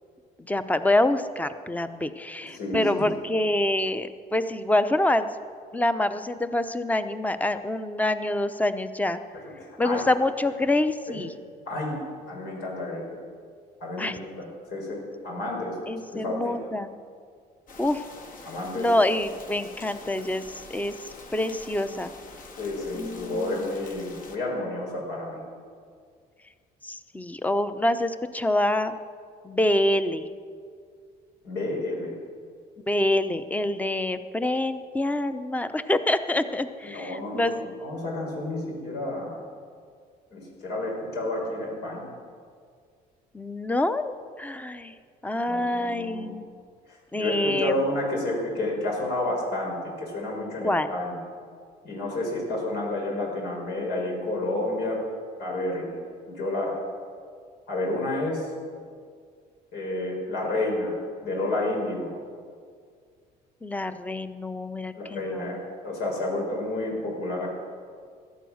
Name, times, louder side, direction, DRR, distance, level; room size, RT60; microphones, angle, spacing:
voice 1, 0.5-5.3 5.7-9.2 9.8-11.3 14.0-14.2 15.9-16.9 17.8-18.0 18.7-20.9 21.3-22.1 22.9-23.7 26.8-28.9 29.4-30.3 32.9-37.7 43.3-44.9 45.2-46.4 47.1-47.8 50.6-50.9 63.6-65.5, left 1 dB, 10° left, 11 dB, 0.8 m, -26 dB
voice 2, 2.4-3.1 9.6-10.0 11.1-11.2 11.7-12.0 12.3-13.2 13.8-15.8 16.1-16.6 18.4-18.9 22.6-25.4 31.4-32.1 36.8-37.5 37.8-39.4 40.3-42.1 45.4-46.3 46.9-51.2 51.8-55.0 55.4-56.0 56.3-56.8 57.7-58.5 59.7-62.1 64.9-65.6 65.8-67.5, left 1 dB, 75° left, -1 dB, 5.7 m, -30 dB
sound 1, 17.7-24.4, left 3 dB, 55° left, 2.0 m, -45 dB
17.5 x 12.5 x 6.5 m, 2.1 s
cardioid pair, 110°, 17 cm